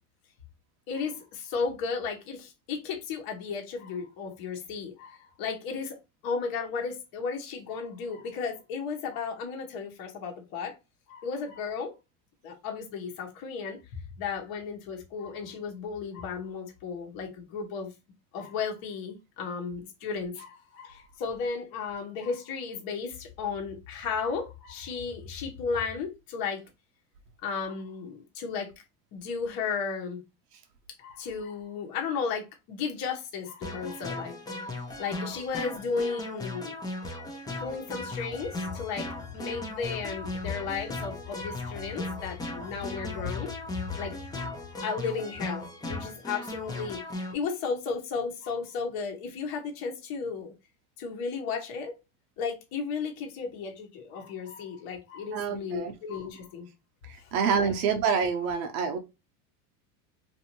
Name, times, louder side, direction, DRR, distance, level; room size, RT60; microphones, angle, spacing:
voice 1, 0.9-6.0 6.2-10.8 11.1-11.9 12.4-13.8 14.2-17.9 18.3-26.6 27.4-28.7 29.1-30.2 31.0-34.7 35.0-36.8 37.6-43.5 44.0-50.5 51.0-52.0 52.4-56.7 57.2-57.3 57.6-57.8, left 5 dB, 50° left, 1.0 m, -34 dB
sound 1, 33.6-47.3, left 2 dB, 10° left, 0.4 m, -37 dB
voice 2, 55.3-55.9 57.0-59.0, right 6 dB, 65° right, 0.7 m, -27 dB
2.6 x 2.5 x 2.9 m
supercardioid pair, 125°, 46 cm